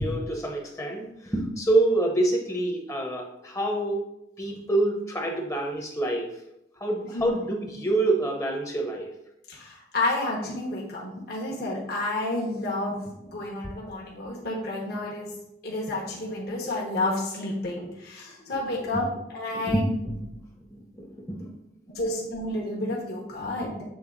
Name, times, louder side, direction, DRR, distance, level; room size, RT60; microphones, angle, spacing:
voice 1, 0.0-4.1 4.4-6.3 6.8-9.1 18.9-19.0 19.6-20.3 20.7-21.5 23.4-23.5, right 2 dB, 20° left, 2 dB, 0.8 m, -27 dB
voice 2, 9.5-15.3 15.6-19.8 21.9-23.8, left 2 dB, 60° left, -3 dB, 1.3 m, -30 dB
7.6 x 3.3 x 3.9 m, 0.82 s
head